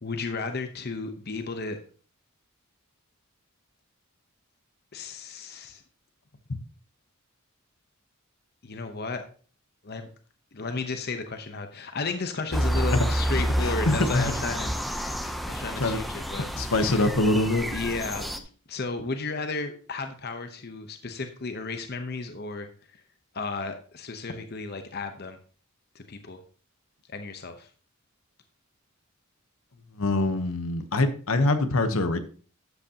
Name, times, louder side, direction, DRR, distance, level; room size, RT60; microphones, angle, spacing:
voice 1, 0.0-1.8 4.9-5.8 8.6-9.2 9.8-10.1 10.5-15.2 15.4-16.5 16.8-17.1 17.7-23.0 23.3-25.4 25.9-26.4 27.1-27.7, left 3 dB, 50° left, 7 dB, 0.9 m, -34 dB
sound 1, 12.5-18.4, equal, ahead, 0.6 m, -29 dB
voice 2, 13.6-14.3 15.2-15.3 15.8-16.0 16.5-17.7 30.0-32.2, left 2 dB, 75° left, 9 dB, 1.0 m, -24 dB
12.0 x 8.1 x 2.9 m, 0.41 s
head